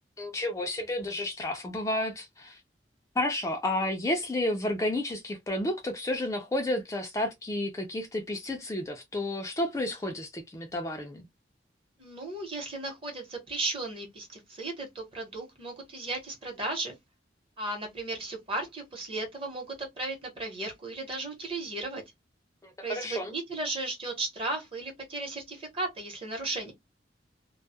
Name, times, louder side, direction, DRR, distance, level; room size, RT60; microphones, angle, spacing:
voice 1, 0.2-2.6 3.2-11.2 22.6-23.3, left 1 dB, 20° left, 0.4 m, -31 dB
voice 2, 12.0-17.0 17.6-22.0 22.8-26.7, right 2 dB, 30° right, 0.9 m, -35 dB
2.2 x 2.0 x 2.7 m
head